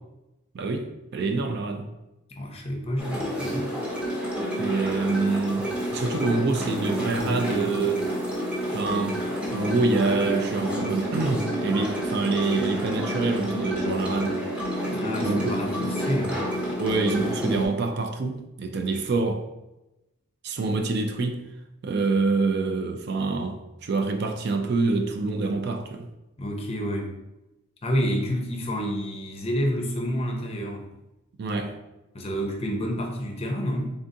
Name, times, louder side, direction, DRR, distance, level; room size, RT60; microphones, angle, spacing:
voice 1, 0.5-1.9 4.6-8.0 8.7-9.2 9.5-14.4 15.2-15.5 16.8-19.5 20.4-21.5 21.8-26.1 31.4-31.7, right 3 dB, 50° right, 0.4 m, -26 dB
voice 2, 2.4-3.7 14.9-16.4 26.4-27.1 27.8-30.9 32.1-33.9, equal, 30° left, 0.5 m, -29 dB
sound 1, 3.0-17.7, equal, 5° right, 0.7 m, -29 dB
3.8 x 3.5 x 2.6 m
head